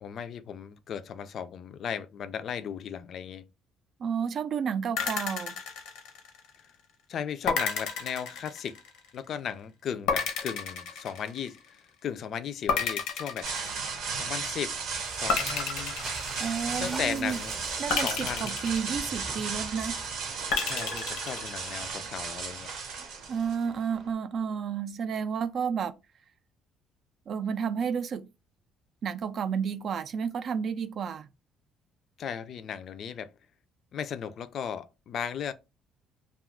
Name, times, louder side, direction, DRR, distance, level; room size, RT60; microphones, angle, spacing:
voice 1, 0.0-3.5 7.1-8.8 9.1-13.5 14.1-14.8 15.1-16.0 16.8-17.6 18.0-18.6 20.6-22.7 32.2-33.3 33.9-35.5, left 8 dB, 55° left, 0.3 m, -36 dB
voice 2, 4.0-5.6 16.4-17.4 17.8-19.9 23.3-25.9 27.3-28.2 29.0-31.3, right 7 dB, 55° right, 0.3 m, -31 dB
sound 1, 5.0-6.6 7.5-9.1 10.1-11.8 12.7-14.3 15.3-17.0 17.9-19.6 20.5-21.9, left 6 dB, 90° left, 0.6 m, -32 dB
sound 2, 13.4-24.1, right 5 dB, 85° right, 0.7 m, -35 dB
sound 3, 14.7-20.3, right 1 dB, 20° right, 0.6 m, -44 dB
2.3 x 2.3 x 3.5 m
cardioid pair, 95°, 0 cm